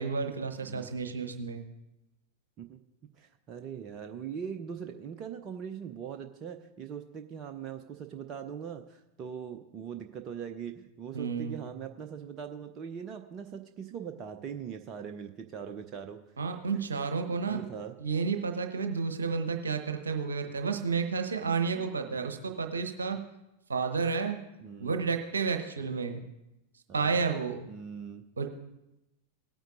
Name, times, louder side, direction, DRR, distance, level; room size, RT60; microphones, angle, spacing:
voice 1, 0.0-1.6 11.1-11.7 16.4-17.6 18.0-23.2 23.7-24.4 24.8-26.2 26.9-27.6 28.4-28.5, right 5 dB, 70° right, 6 dB, 0.9 m, -31 dB
voice 2, 0.6-0.9 2.6-2.8 3.1-16.2 16.7-16.9 17.5-17.9 21.4-22.0 24.6-25.1 25.9-26.0 26.9-27.3 27.7-28.2, right 7 dB, 30° right, 6 dB, 0.6 m, -41 dB
18.0 x 8.9 x 2.5 m, 0.92 s
figure-of-eight pair, 90°, 0 cm